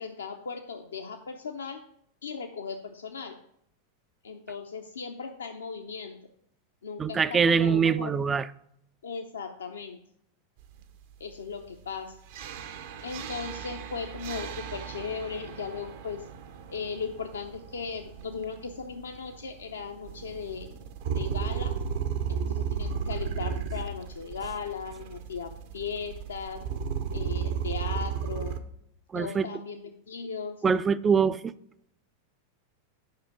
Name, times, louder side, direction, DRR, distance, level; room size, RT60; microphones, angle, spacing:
voice 1, 0.0-1.8 2.2-3.4 4.2-6.2 6.8-8.2 9.0-10.0 11.2-12.1 13.0-16.3 16.7-20.7 21.1-21.7 22.3-26.6 27.1-28.6 29.1-30.6, left 5 dB, 70° left, 0.7 m, -37 dB
voice 2, 7.0-8.5 29.1-29.5 30.6-31.5, right 6 dB, 20° right, 0.4 m, -23 dB
sound 1, 12.3-28.6, right 7 dB, 55° right, 0.8 m, -34 dB
9.5 x 5.7 x 4.7 m
figure-of-eight pair, 90°, 0 cm